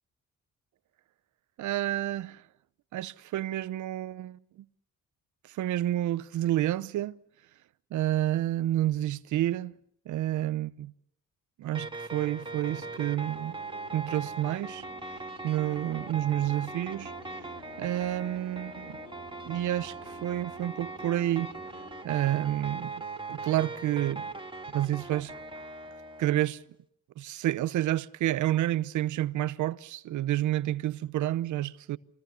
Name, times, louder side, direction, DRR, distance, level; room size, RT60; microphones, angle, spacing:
voice 1, 1.6-2.4 2.9-4.6 5.4-7.2 7.9-9.7 10.1-10.9 11.6-13.6 13.9-14.9 15.4-17.1 17.8-19.0 19.4-21.5 22.0-23.0 23.3-24.3 24.7-25.3 26.2-26.6 27.2-32.0, right 13 dB, 75° right, 0.9 m, -29 dB
sound 1, 11.7-26.5, right 3 dB, 15° right, 2.6 m, -40 dB
Singing, 12.3-22.0, left 4 dB, 90° left, 6.1 m, -52 dB
26.5 x 20.5 x 6.9 m
cardioid pair, 90°, 30 cm